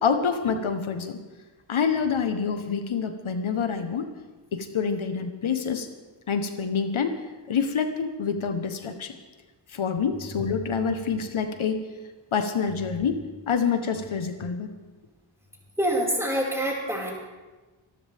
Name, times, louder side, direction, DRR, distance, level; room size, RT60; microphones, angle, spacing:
voice 1, 0.0-1.2 1.7-4.1 4.5-5.9 6.3-7.2 7.5-9.1 9.7-11.9 12.3-14.7, left 6 dB, 80° left, 7 dB, 1.2 m, -27 dB
voice 2, 15.8-17.2, equal, 5° right, -3 dB, 5.1 m, -26 dB
25.5 x 13.0 x 3.5 m, 1.2 s
wide cardioid pair, 80°, 48 cm